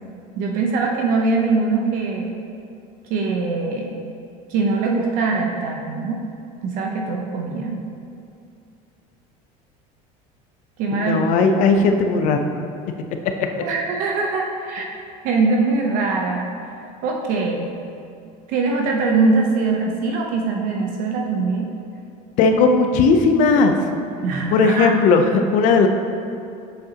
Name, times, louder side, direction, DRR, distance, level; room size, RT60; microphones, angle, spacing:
voice 1, 0.4-2.3 3.1-3.9 4.5-6.2 6.6-7.8 10.8-11.3 11.7-11.9 13.6-14.9 15.2-16.5 17.0-17.7 18.5-21.7 24.2-25.0, right 3 dB, 55° right, 0 dB, 0.7 m, -22 dB
voice 2, 10.9-12.5 13.2-13.3 13.6-13.7 22.4-23.8 24.5-25.9, left 4 dB, 50° left, 5 dB, 0.6 m, -17 dB
7.8 x 7.1 x 2.9 m, 2.5 s
cardioid pair, 170°, 17 cm